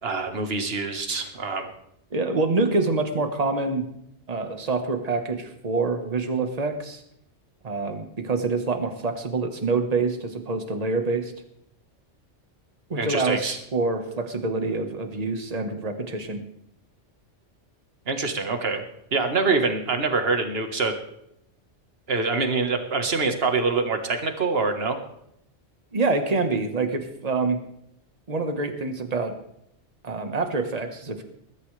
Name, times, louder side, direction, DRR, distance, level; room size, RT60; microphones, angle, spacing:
voice 1, 0.0-1.7 12.9-13.6 18.1-18.8 19.1-21.0 22.1-25.0, right 4 dB, 60° right, 6 dB, 1.7 m, -25 dB
voice 2, 2.1-3.9 4.3-7.0 7.6-11.3 12.9-16.4 25.9-27.6 28.3-29.3 30.0-31.2, right 3 dB, 35° right, 6 dB, 1.5 m, -26 dB
21.0 x 12.5 x 3.4 m, 0.77 s
omnidirectional pair, 1.2 m